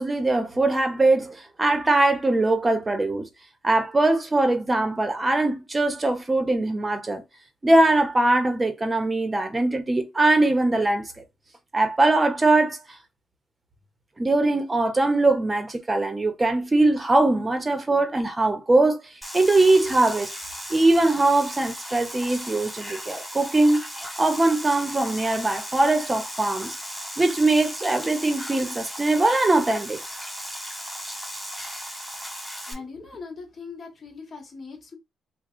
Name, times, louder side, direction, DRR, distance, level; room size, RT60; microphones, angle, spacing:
voice 1, 0.0-3.3 3.6-7.2 7.6-11.1 11.7-12.8 14.2-19.0 19.3-20.3 20.7-23.8 24.2-26.7 27.2-30.0, right 2 dB, 20° right, 1.1 m, -21 dB
sound 1, 19.2-32.7, equal, ahead, 1.9 m, -36 dB
voice 2, 32.7-35.0, left 4 dB, 40° left, 1.6 m, -40 dB
3.2 x 2.4 x 3.9 m
cardioid pair, 90°, 0 cm